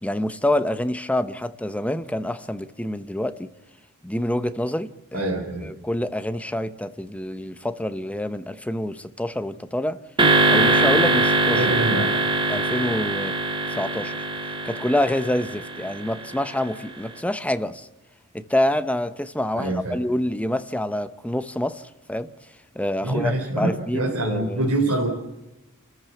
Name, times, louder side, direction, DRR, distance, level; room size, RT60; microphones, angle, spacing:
voice 1, 0.0-3.5 4.0-5.3 5.6-10.0 10.5-11.7 12.5-13.4 13.8-14.2 14.6-17.9 18.3-22.3 22.7-24.7, left 1 dB, 5° left, 0.9 m, -27 dB
voice 2, 5.1-5.7 11.5-12.0 19.6-20.0 23.0-25.1, right 2 dB, 70° right, 3.8 m, -25 dB
sound 1, 10.2-16.6, right 3 dB, 25° right, 2.0 m, -22 dB
29.5 x 14.0 x 7.2 m
head